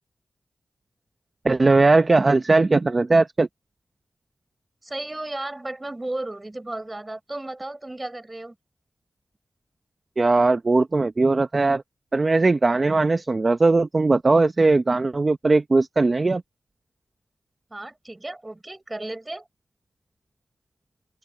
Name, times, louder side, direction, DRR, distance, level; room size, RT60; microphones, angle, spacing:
voice 1, 1.4-3.5 10.2-11.8 12.1-16.4, right 3 dB, 40° right, 0.9 m, -19 dB
voice 2, 4.8-8.5 17.7-19.5, right 2 dB, 20° right, 6.7 m, -34 dB
open air
wide cardioid pair, 90°, 0 cm